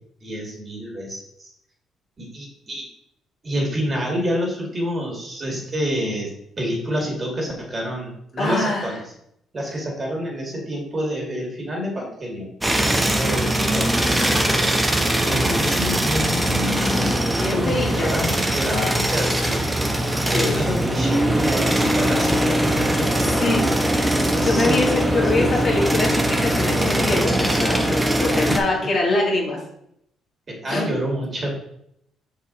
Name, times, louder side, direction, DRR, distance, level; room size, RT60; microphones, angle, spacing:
voice 1, 0.2-1.5 2.2-2.9 3.4-6.3 6.6-9.0 9.5-12.5 13.1-14.8 15.3-17.1 17.5-19.7 20.3-24.0 24.3-24.8 25.1-25.6 28.3-28.7 30.5-31.5, equal, 35° right, -1 dB, 2.5 m, -28 dB
voice 2, 8.4-8.9 17.4-18.1 20.3-20.6 23.4-23.6 24.4-29.6 30.7-30.8, left 2 dB, 50° left, -2 dB, 2.2 m, -24 dB
sound 1, 12.6-28.6, right 1 dB, 10° right, 1.0 m, -21 dB
5.5 x 4.8 x 4.1 m, 0.73 s
supercardioid pair, 75°, 0 cm